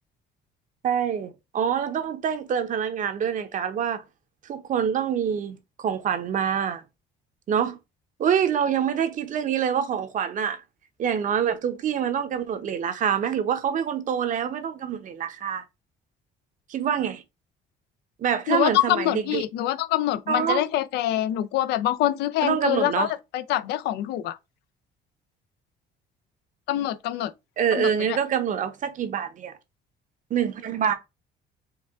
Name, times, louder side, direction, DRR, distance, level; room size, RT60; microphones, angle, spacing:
voice 1, 0.8-4.0 4.5-6.8 7.5-7.8 8.2-10.6 11.0-15.6 16.7-17.2 18.2-19.4 20.3-20.6 22.4-23.1 27.6-29.5 30.3-30.9, right 8 dB, 50° right, 0.8 m, -26 dB
voice 2, 18.5-23.1 23.3-24.4 26.7-27.3 27.7-28.2, left 13 dB, 80° left, 0.5 m, -25 dB
4.7 x 2.3 x 3.5 m
cardioid pair, 110°, 17 cm